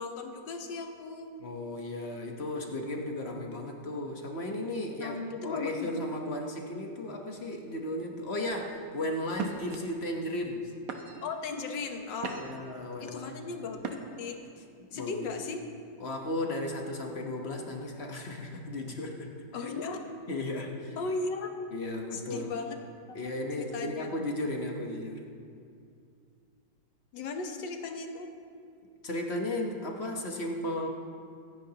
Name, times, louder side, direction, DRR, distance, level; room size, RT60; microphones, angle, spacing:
voice 1, 0.0-1.3 5.0-5.9 11.2-12.4 13.0-14.7 14.9-15.6 19.5-20.0 21.0-21.5 22.1-22.8 23.6-24.1 27.1-28.3, left 4 dB, 80° left, 4 dB, 1.7 m, -36 dB
voice 2, 1.4-10.7 12.4-13.7 14.9-15.3 16.0-19.3 19.6-19.7 20.3-21.0 21.7-22.5 23.1-25.2 29.0-30.9, left 1 dB, 40° left, 1 dB, 1.2 m, -35 dB
sound 1, 8.5-8.8 9.3-9.8 10.4-10.6 10.9-11.4 11.9-12.7 13.8-14.3, right 5 dB, 60° right, 1.2 m, -38 dB
25.0 x 9.7 x 2.9 m, 2.4 s
omnidirectional pair, 1.9 m